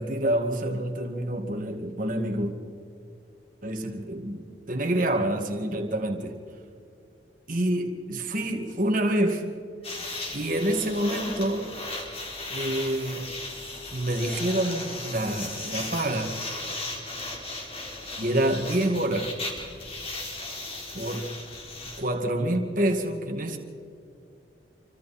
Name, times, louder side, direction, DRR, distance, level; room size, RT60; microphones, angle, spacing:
voice 1, 0.0-2.5 3.6-6.4 7.5-9.6 10.3-11.7 12.5-13.3 13.9-16.4 18.2-19.3 20.9-21.4 22.0-23.6, right 1 dB, 45° right, 2.1 m, -27 dB
sound 1, 9.8-22.0, left 2 dB, 30° left, 4.1 m, -36 dB
27.5 x 25.5 x 4.4 m
head